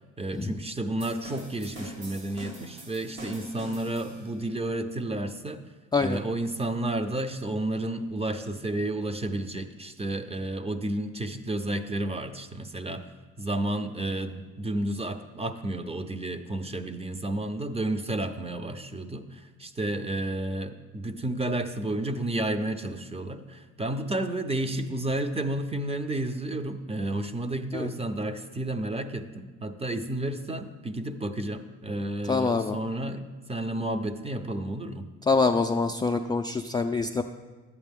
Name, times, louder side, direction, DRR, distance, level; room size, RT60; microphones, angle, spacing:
voice 1, 0.2-5.6 6.0-13.1 13.4-35.1, right 1 dB, 20° right, 9 dB, 0.6 m, -31 dB
sound 1, 1.0-4.4, equal, 80° right, 3.3 m, -43 dB
voice 2, 32.3-32.8 35.3-37.2, left 4 dB, 15° left, 3 dB, 0.3 m, -25 dB
11.5 x 8.2 x 3.6 m, 1.3 s
cardioid pair, 90°, 30 cm